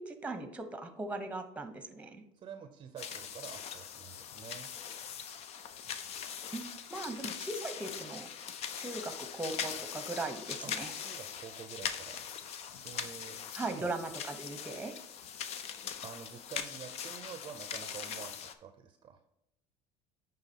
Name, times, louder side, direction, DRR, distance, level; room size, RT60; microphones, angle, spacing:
voice 1, 0.0-2.2 6.5-6.6 6.9-8.3 8.7-10.9 13.5-14.9, right 2 dB, 10° right, 8 dB, 0.9 m, -39 dB
voice 2, 2.3-4.7 10.6-12.2 12.8-13.4 13.6-13.9 16.0-19.2, right 8 dB, 40° right, 8 dB, 0.6 m, -48 dB
sound 1, 3.0-18.5, left 8 dB, 55° left, 0.6 m, -41 dB
9.7 x 3.9 x 2.8 m, 0.83 s
supercardioid pair, 100°, 13 cm